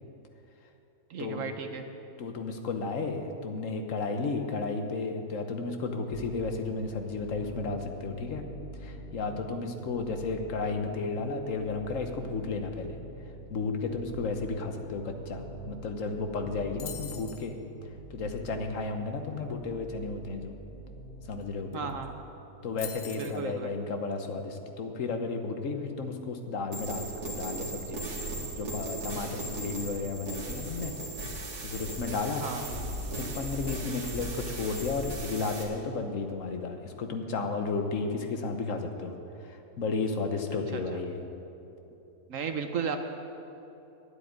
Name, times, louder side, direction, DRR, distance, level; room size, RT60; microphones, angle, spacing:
voice 1, 1.1-1.8 21.7-22.1 23.1-23.7 32.4-32.7 40.7-40.8 42.3-43.0, right 6 dB, 65° right, 6 dB, 1.1 m, -34 dB
voice 2, 2.2-8.4 8.8-13.0 13.5-17.6 18.1-20.5 21.3-21.9 22.6-28.1 28.6-30.9 31.6-32.5 33.2-39.1 39.4-41.2, left 4 dB, 60° left, 5 dB, 1.3 m, -33 dB
sound 1, 6.1-22.1, right 2 dB, 45° left, 2.8 m, -45 dB
sound 2, 16.8-17.5 21.4-21.5 21.7-22.1 22.8-23.4, left 7 dB, 75° left, 1.4 m, -42 dB
sound 3, 26.7-35.6, right 1 dB, 85° right, 2.5 m, -37 dB
10.5 x 8.2 x 9.4 m, 3.0 s
omnidirectional pair, 1.6 m